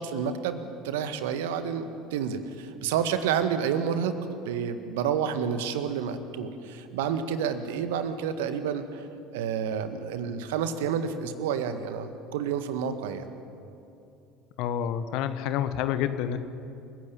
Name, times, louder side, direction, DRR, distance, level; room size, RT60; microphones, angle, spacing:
voice 1, 0.0-4.2 4.4-9.1 9.3-13.3, right 7 dB, 70° right, 9 dB, 1.7 m, -29 dB
voice 2, 14.6-16.4, left 10 dB, 60° left, 11 dB, 1.3 m, -28 dB
28.0 x 16.0 x 9.9 m, 2.7 s
figure-of-eight pair, 65°, 0 cm